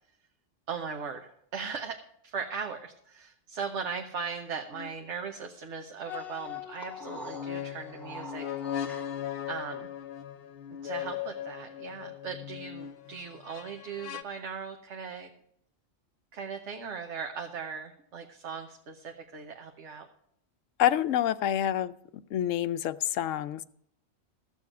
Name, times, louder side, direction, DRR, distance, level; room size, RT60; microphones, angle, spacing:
voice 1, 0.7-8.5 9.5-9.9 10.8-15.3 16.3-20.1, right 6 dB, 70° right, 4 dB, 1.3 m, -38 dB
sound 1, 4.7-4.9 6.0-14.2, left 10 dB, 55° left, 0.8 m, -38 dB
sound 2, 6.1-9.4, right 2 dB, ahead, 1.0 m, -47 dB
voice 2, 20.8-21.9 22.3-23.6, left 11 dB, 85° left, 14 dB, 1.0 m, -27 dB
15.0 x 7.2 x 6.0 m, 0.73 s
omnidirectional pair, 1.3 m